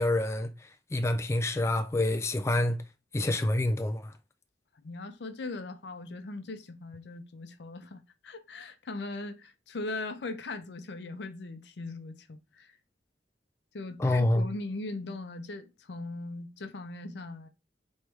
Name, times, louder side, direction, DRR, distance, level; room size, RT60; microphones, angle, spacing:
voice 1, 0.0-2.8 3.1-4.1 14.0-14.5, left 1 dB, 15° left, 0.3 m, -27 dB
voice 2, 4.8-12.7 13.7-17.5, left 2 dB, 75° left, 0.6 m, -39 dB
4.4 x 3.1 x 3.5 m
head